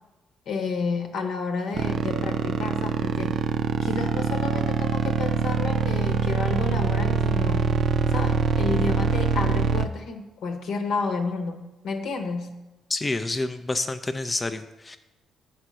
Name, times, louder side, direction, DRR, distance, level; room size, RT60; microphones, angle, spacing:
voice 1, 0.5-3.4 3.8-7.7 8.1-12.5, left 4 dB, 70° left, 6 dB, 1.0 m, -31 dB
sound 1, 1.7-9.9, right 6 dB, 60° right, 0.5 m, -24 dB
voice 2, 12.9-15.0, left 2 dB, 20° left, 8 dB, 0.4 m, -28 dB
7.4 x 4.4 x 6.2 m, 1.0 s
cardioid pair, 75°, 0 cm